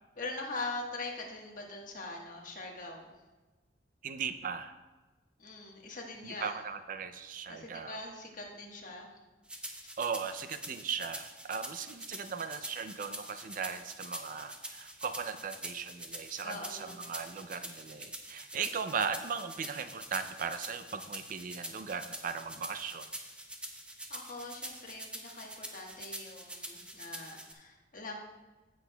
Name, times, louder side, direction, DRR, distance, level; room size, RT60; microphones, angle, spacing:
voice 1, 0.2-3.1 5.4-6.6 7.5-9.1 16.4-17.0 24.1-28.2, left 2 dB, 45° left, 0 dB, 1.4 m, -42 dB
voice 2, 4.0-4.8 6.2-8.0 10.0-23.1, right 6 dB, 50° right, 10 dB, 0.4 m, -38 dB
sound 1, 9.5-27.5, right 1 dB, 5° right, 0.7 m, -45 dB
15.5 x 6.2 x 2.3 m, 1.2 s
head